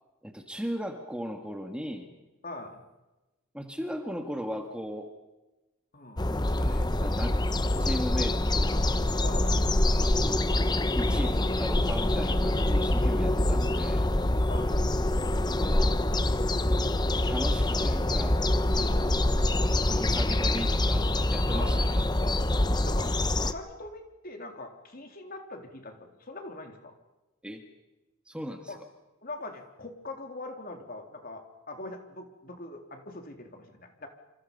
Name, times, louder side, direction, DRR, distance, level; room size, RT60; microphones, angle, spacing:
voice 1, 0.2-2.1 3.5-5.1 6.2-7.4 7.8-8.8 10.1-10.5 11.0-14.1 15.6-16.0 17.3-18.4 19.8-22.1 27.4-27.7 28.3-28.8, equal, 5° right, 4 dB, 1.8 m, -37 dB
voice 2, 2.4-2.8 5.9-6.2 9.2-9.6 14.4-14.8 18.8-19.5 21.5-21.9 22.9-23.1 23.4-26.9 28.7-28.8 29.2-34.1, left 2 dB, 45° left, 4 dB, 3.6 m, -42 dB
sound 1, 6.2-23.5, left 1 dB, 20° left, 0.9 m, -25 dB
28.0 x 27.0 x 5.5 m, 1.0 s
head